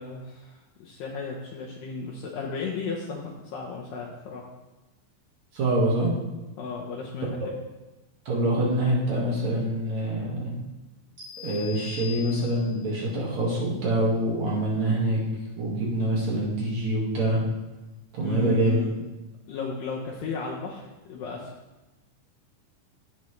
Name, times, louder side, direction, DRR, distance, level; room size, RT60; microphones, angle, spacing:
voice 1, 0.0-4.4 6.6-7.5 18.2-18.9 19.5-21.5, left 4 dB, 75° left, -3 dB, 2.4 m, -34 dB
voice 2, 5.5-6.1 8.3-10.6 11.4-15.2 15.6-17.4 18.1-18.8, right 1 dB, 55° right, -4 dB, 2.8 m, -25 dB
sound 1, 11.2-12.9, left 10 dB, 35° right, 2.0 m, -42 dB
16.0 x 5.3 x 3.2 m, 1.1 s
omnidirectional pair, 4.2 m